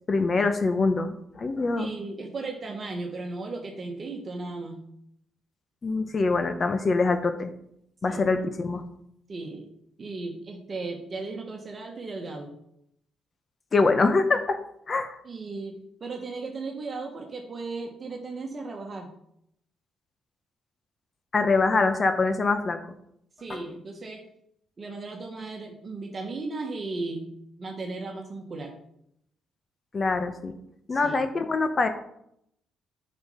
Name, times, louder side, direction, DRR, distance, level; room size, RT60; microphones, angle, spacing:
voice 1, 0.1-1.9 5.8-7.5 8.0-8.8 13.7-14.6 14.9-15.2 21.3-22.8 23.5-23.6 29.9-30.5 30.9-31.9, left 3 dB, 35° left, 8 dB, 0.8 m, -24 dB
voice 2, 1.8-4.8 8.1-8.2 9.3-9.7 10.0-12.5 15.2-19.1 23.4-24.2 24.8-27.3 27.6-28.7 30.9-31.2, right 3 dB, 40° right, 1 dB, 1.4 m, -36 dB
7.9 x 5.4 x 5.5 m, 0.74 s
cardioid pair, 90°, 0 cm